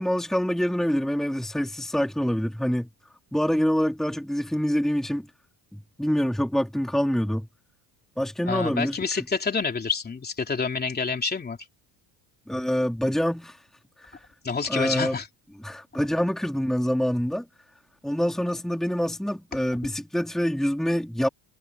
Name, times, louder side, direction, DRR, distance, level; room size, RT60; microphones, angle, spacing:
voice 1, 0.0-2.9 3.3-5.3 5.7-7.5 8.2-9.2 12.5-13.6 14.0-14.2 14.7-15.2 15.6-17.5 18.0-21.3, equal, ahead, 2.4 m, -26 dB
voice 2, 8.5-11.6 14.4-15.3, left 5 dB, 20° left, 3.2 m, -28 dB
cardioid pair, 125°, 45 cm